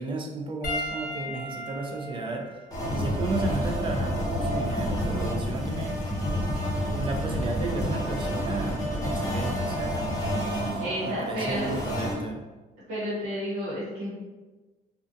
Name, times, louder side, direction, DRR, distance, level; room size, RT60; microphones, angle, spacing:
voice 1, 0.0-2.5 2.8-6.0 6.8-12.4, right 3 dB, 30° right, 2 dB, 0.4 m, -34 dB
Piano, 0.6-5.3 6.2-6.4 8.4-8.5, left 1 dB, 55° left, 0.6 m, -38 dB
sound 1, 2.7-12.1, equal, 20° left, 0.7 m, -29 dB
voice 2, 10.8-11.7 12.9-14.1, equal, 85° right, -9 dB, 1.0 m, -31 dB
2.4 x 2.2 x 2.5 m, 1.2 s
cardioid pair, 110°, 17 cm